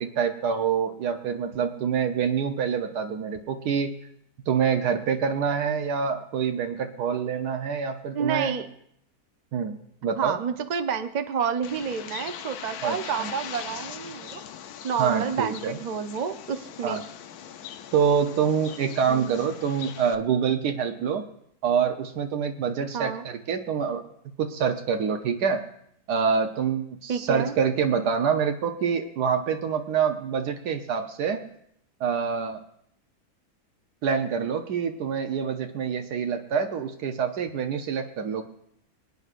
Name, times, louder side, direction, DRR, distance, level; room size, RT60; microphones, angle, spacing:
voice 1, 0.0-4.0 4.5-8.5 9.5-9.7 10.0-10.4 12.8-13.3 15.0-15.8 16.8-17.0 17.9-21.2 21.6-24.0 24.4-25.6 26.1-31.4 32.0-32.6 34.0-38.4, right 7 dB, 85° right, 6 dB, 1.3 m, -26 dB
voice 2, 8.1-8.7 10.2-14.4 14.8-17.0 19.1-19.3 22.9-23.2 27.1-27.5, right 7 dB, 50° right, 7 dB, 0.5 m, -29 dB
Bird, 11.6-20.1, left 9 dB, 75° left, 1.2 m, -41 dB
26.5 x 9.4 x 2.5 m, 0.70 s
omnidirectional pair, 1.7 m